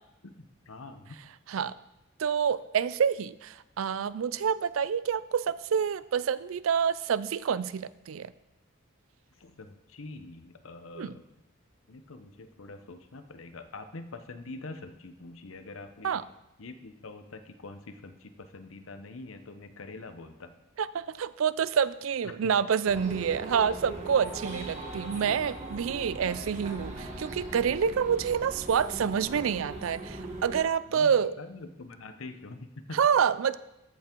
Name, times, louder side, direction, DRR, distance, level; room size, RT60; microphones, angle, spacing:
voice 1, 0.2-1.2 9.3-11.2 11.9-16.2 16.6-20.5 22.2-22.5 23.1-23.2 30.9-33.0, left 3 dB, 85° left, 9 dB, 0.8 m, -45 dB
voice 2, 2.2-8.3 10.9-11.2 16.0-16.2 20.8-31.3 32.9-33.6, right 7 dB, 80° right, 17 dB, 0.4 m, -27 dB
sound 1, 22.8-30.6, right 1 dB, 35° right, 1.6 m, -40 dB
14.0 x 5.9 x 4.5 m, 0.91 s
head